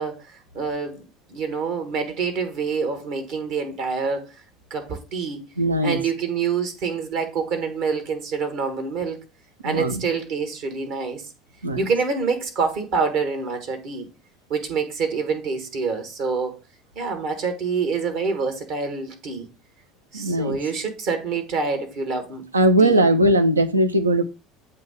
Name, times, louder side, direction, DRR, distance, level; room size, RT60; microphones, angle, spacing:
voice 1, 0.0-4.3 4.7-5.4 5.8-9.2 9.6-11.3 11.8-14.1 14.5-16.6 16.9-19.5 20.1-22.4 22.8-23.1, right 5 dB, 55° right, 1.3 m, -26 dB
voice 2, 5.6-6.0 9.6-10.0 11.6-11.8 20.1-20.6 22.5-24.2, right 1 dB, 85° right, 0.4 m, -19 dB
7.5 x 2.8 x 4.7 m
figure-of-eight pair, 65°, 0 cm